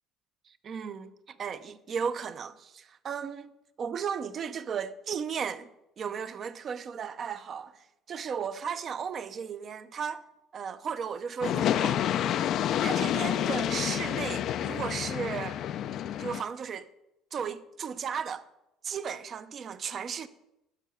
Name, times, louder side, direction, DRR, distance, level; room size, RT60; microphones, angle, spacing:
voice 1, 0.5-3.5 3.8-5.7 6.0-10.2 10.5-12.1 12.8-15.6 16.2-16.9 17.3-18.5 18.8-20.3, right 7 dB, 45° right, 0.5 m, -35 dB
sound 1, 11.4-16.4, left 11 dB, 55° left, 0.3 m, -29 dB
6.6 x 5.5 x 6.7 m
cardioid pair, 105°, 0 cm